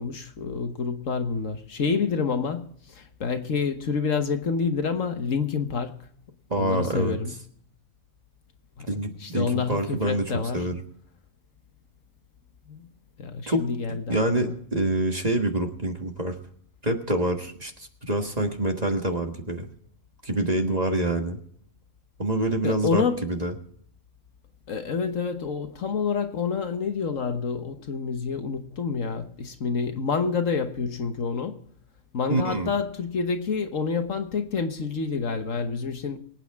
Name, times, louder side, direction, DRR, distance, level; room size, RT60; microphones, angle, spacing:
voice 1, 0.0-6.0 6.5-7.3 8.8-8.9 9.2-10.7 12.7-12.9 13.2-14.6 22.6-23.2 24.7-31.6 32.1-36.2, left 5 dB, 65° left, 1.5 m, -28 dB
voice 2, 6.5-7.2 8.9-10.8 13.5-13.6 13.9-16.4 16.8-19.7 20.2-21.4 22.2-23.5 32.3-32.7, right 1 dB, 30° right, 1.6 m, -26 dB
24.0 x 9.1 x 3.5 m
omnidirectional pair, 1.5 m